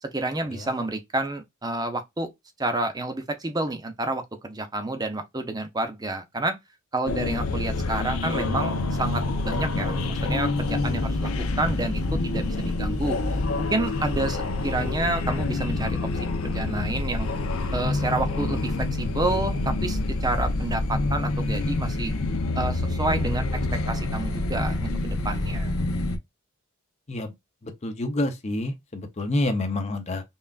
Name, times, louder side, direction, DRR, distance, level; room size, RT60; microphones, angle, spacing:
voice 1, 0.0-2.3 2.6-6.6 6.9-11.3 11.6-13.2 13.6-16.1 16.4-17.3 17.7-22.1 22.6-23.5 23.9-25.7, right 2 dB, 15° right, 0.6 m, -29 dB
sound 1, 7.1-26.2, left 2 dB, 70° left, 0.6 m, -27 dB
voice 2, 27.6-30.2, left 1 dB, 30° left, 0.7 m, -28 dB
5.4 x 2.4 x 2.4 m
head